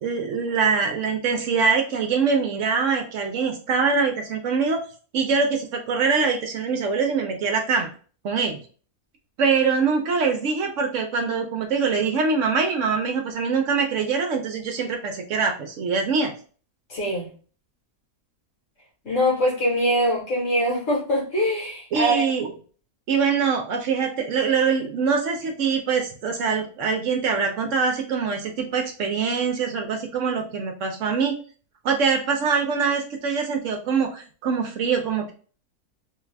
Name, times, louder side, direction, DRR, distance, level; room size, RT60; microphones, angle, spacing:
voice 1, 0.0-4.8 5.1-7.9 8.2-8.6 9.4-16.3 21.9-22.5 23.1-31.3 31.8-35.3, right 5 dB, 65° right, 4 dB, 0.9 m, -23 dB
voice 2, 16.9-17.3 19.0-22.3, equal, 60° left, -3 dB, 1.7 m, -23 dB
3.2 x 2.4 x 3.2 m, 0.40 s
omnidirectional pair, 1.5 m